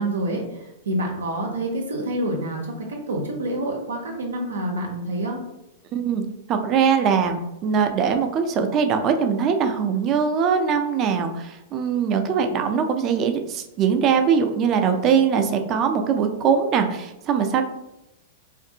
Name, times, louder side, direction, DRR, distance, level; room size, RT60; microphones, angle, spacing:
voice 1, 0.0-5.4, right 1 dB, 90° right, 0 dB, 0.6 m, -27 dB
voice 2, 5.9-6.2 6.5-17.6, right 6 dB, 35° right, 6 dB, 0.4 m, -21 dB
2.5 x 2.5 x 2.7 m, 0.89 s
hypercardioid pair, 115°, 0 cm